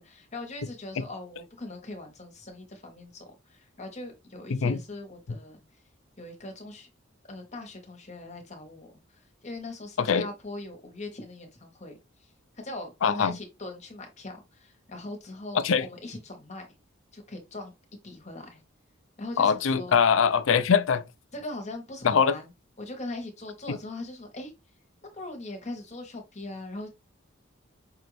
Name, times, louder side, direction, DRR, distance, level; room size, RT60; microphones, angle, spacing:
voice 1, 0.0-5.6 6.2-6.9 7.3-11.9 12.2-12.3 12.5-16.7 17.1-17.7 18.0-18.6 19.2-20.0 21.3-22.5 22.8-24.5 25.0-26.9, left 2 dB, 35° left, 1.2 m, -40 dB
voice 2, 13.0-13.4 15.5-15.8 19.4-21.0 22.0-22.4 23.7-23.8, left 6 dB, 75° left, 0.5 m, -22 dB
5.5 x 2.6 x 3.1 m
head